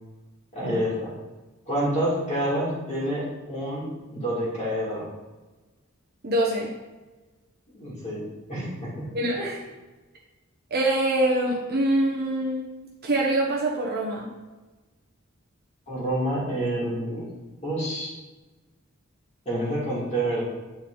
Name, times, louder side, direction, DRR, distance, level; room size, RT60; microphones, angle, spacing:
voice 1, 0.5-1.1 1.7-3.9 4.1-5.1 7.7-9.1 15.9-17.3 17.6-18.1 19.5-20.4, right 1 dB, 30° left, -8 dB, 2.3 m, -28 dB
voice 2, 6.2-6.7 9.1-9.6 10.7-12.7 13.0-14.3, right 1 dB, 45° right, -3 dB, 0.9 m, -24 dB
8.4 x 4.2 x 3.8 m, 1.2 s
head